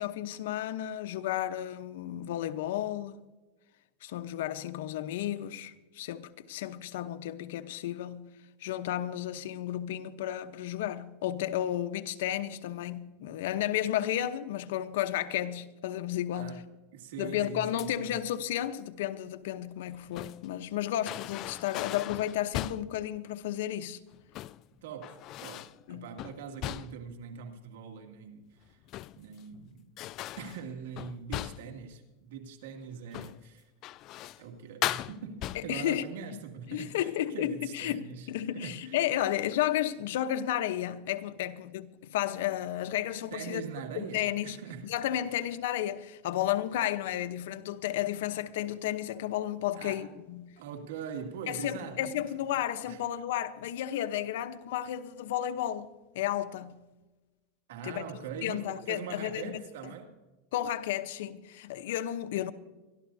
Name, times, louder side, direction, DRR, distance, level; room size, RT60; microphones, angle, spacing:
voice 1, 0.0-3.3 4.0-8.3 8.6-16.6 17.2-24.0 25.9-26.1 35.5-36.4 36.7-43.6 43.9-50.5 51.5-55.9 56.1-56.8 57.8-58.0 58.4-59.6 60.5-62.5, left 12 dB, 75° left, 0.9 m, -33 dB
voice 2, 16.9-18.2 24.8-28.8 29.2-29.9 30.4-33.6 34.4-38.3 38.5-39.0 43.3-44.9 49.7-50.1 50.6-52.4 52.9-53.0 57.7-60.1, right 6 dB, 80° right, 2.4 m, -42 dB
sound 1, 17.8-18.2 19.8-20.5 21.1-23.0 24.1-24.7 25.0-25.8 26.2-27.1 28.7-29.4 30.0-31.8 33.1-33.5 33.8-34.5 34.8-35.9, left 15 dB, 40° left, 0.3 m, -38 dB
24.5 x 13.0 x 2.8 m
supercardioid pair, 140°, 0 cm